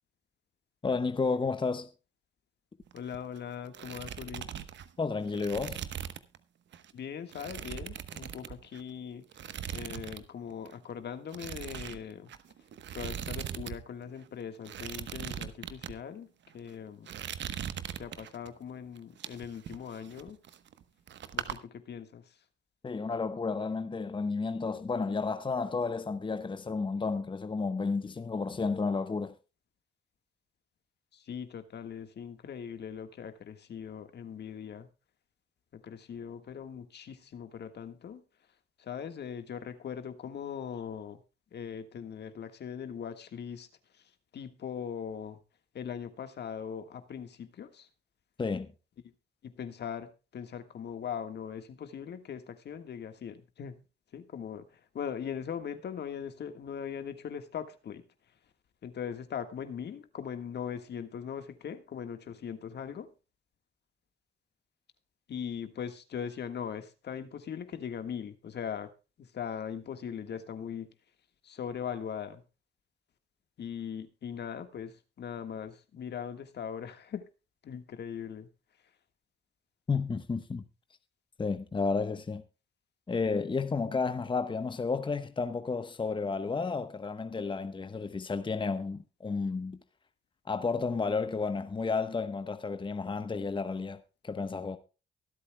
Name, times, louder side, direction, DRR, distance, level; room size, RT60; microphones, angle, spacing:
voice 1, 0.8-1.9 5.0-5.8 22.8-29.3 48.4-48.7 79.9-80.6 81.4-82.4 83.1-89.8 90.5-94.8, left 4 dB, 25° left, 1.1 m, -32 dB
sound 1, 2.8-3.4 3.6-6.4 6.7-6.9 7.3-8.9 9.3-10.3 10.5-10.7 11.3-13.8 14.0-14.1 14.6-15.9 16.5-16.7 17.1-18.5 19.0-20.8 21.1-21.6, right 9 dB, 65° right, 1.1 m, -40 dB
voice 2, 2.9-4.5 6.9-9.3 9.7-12.3 12.9-16.3 16.5-17.1 18.0-20.4 21.3-22.4 31.1-34.9 35.7-38.2 38.8-41.2 41.5-43.7 43.9-45.4 45.7-47.9 49.4-53.8 54.1-58.0 58.8-63.1 65.3-68.9 69.2-70.9 71.4-72.4 73.6-77.2 77.6-78.5, left 8 dB, 55° left, 1.6 m, -40 dB
23.5 x 8.4 x 2.2 m
cardioid pair, 90°, 20 cm